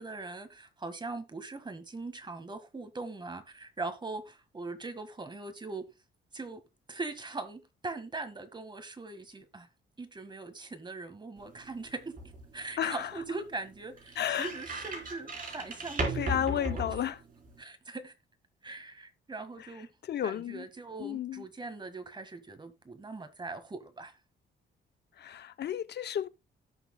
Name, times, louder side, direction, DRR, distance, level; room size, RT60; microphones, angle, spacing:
voice 1, 0.0-5.9 6.3-6.6 6.9-9.7 10.0-12.2 12.5-16.9 17.6-18.1 18.6-19.9 20.2-24.1, right 3 dB, 25° right, 1.6 m, -41 dB
sound 1, 11.4-17.6, right 1 dB, 45° right, 4.1 m, -38 dB
voice 2, 12.8-13.1 14.2-14.5 16.1-17.2 20.0-20.7 21.0-21.4 25.2-26.3, left 10 dB, 55° left, 0.6 m, -32 dB
17.5 x 6.1 x 2.2 m
cardioid pair, 90°, 20 cm